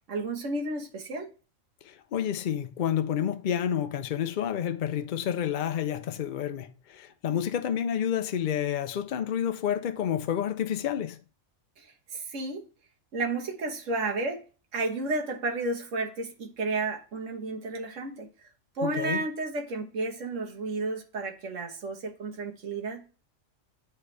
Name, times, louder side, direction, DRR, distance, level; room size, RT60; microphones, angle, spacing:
voice 1, 0.1-1.3 11.8-12.6 13.1-14.4 14.7-18.3 18.7-23.0, right 3 dB, 70° right, 1.5 m, -32 dB
voice 2, 1.8-11.2 18.8-19.2, left 9 dB, 60° left, 0.5 m, -29 dB
9.6 x 3.3 x 3.1 m
omnidirectional pair, 1.3 m